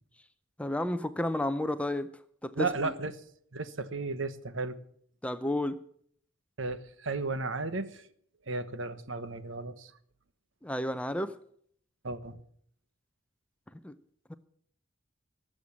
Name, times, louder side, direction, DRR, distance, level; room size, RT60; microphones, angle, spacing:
voice 1, 0.6-2.1 2.4-2.9 5.2-5.8 10.6-11.3 13.7-13.9 14.3-14.4, left 1 dB, 5° left, 0.6 m, -32 dB
voice 2, 2.5-3.1 3.5-4.8 6.6-8.1 8.5-9.9 12.0-12.4, right 3 dB, 75° right, 1.1 m, -34 dB
19.0 x 7.7 x 7.2 m
head